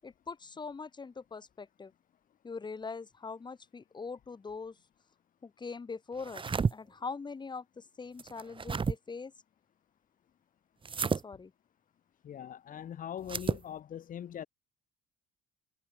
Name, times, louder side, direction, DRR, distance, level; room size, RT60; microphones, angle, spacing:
voice 1, 0.0-1.9 2.4-4.8 5.4-9.3 11.1-11.5, left 4 dB, 25° left, 7.6 m, -42 dB
sound 1, 6.2-6.7 8.2-9.0 10.8-11.2 13.2-13.6, right 5 dB, 30° right, 4.7 m, -31 dB
voice 2, 12.2-14.5, left 10 dB, 55° left, 6.2 m, -41 dB
cardioid pair, 110°, 17 cm